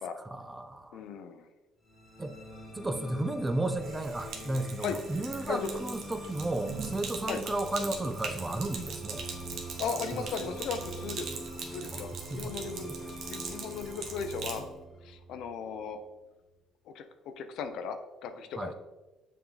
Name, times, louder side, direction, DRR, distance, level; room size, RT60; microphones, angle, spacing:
voice 1, 0.2-1.0 2.2-2.4 2.7-9.2 10.2-10.3 11.9-12.0 12.3-12.5 12.9-13.0 18.6-18.7, right 2 dB, 15° right, 9 dB, 0.4 m, -33 dB
voice 2, 0.9-1.5 4.8-5.0 5.5-5.7 7.3-7.4 9.8-11.4 11.7-14.7 15.0-16.0 16.9-17.0 17.4-18.7, left 6 dB, 65° left, 8 dB, 0.6 m, -37 dB
sound 1, 1.9-16.2, right 1 dB, 25° left, 1.1 m, -44 dB
Sink (filling or washing), 3.7-14.7, right 5 dB, 55° right, 1.0 m, -41 dB
7.0 x 3.7 x 3.9 m, 1.1 s
cardioid pair, 125°, 0 cm